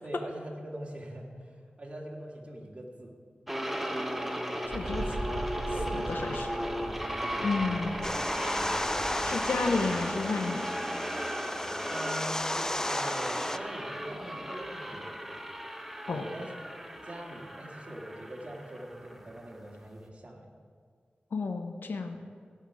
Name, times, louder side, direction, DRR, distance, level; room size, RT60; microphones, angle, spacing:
voice 1, 0.0-3.1 5.7-7.5 7.8-7.9 11.9-15.1 16.1-16.5 17.0-20.5 22.1-22.2, right 1 dB, 35° right, -2 dB, 2.2 m, -43 dB
sound 1, 3.5-19.7, equal, 5° right, 0.9 m, -36 dB
voice 2, 4.7-5.3 5.9-6.5 7.4-8.1 9.2-10.7 16.1-16.2 21.3-22.2, left 4 dB, 90° left, 6 dB, 0.7 m, -31 dB
Wind, 4.7-10.2, right 2 dB, 75° right, 1.5 m, -41 dB
sound 2, 8.0-13.6, left 1 dB, 15° left, 0.4 m, -34 dB
17.5 x 5.8 x 4.8 m, 2.1 s
wide cardioid pair, 65°, 3 cm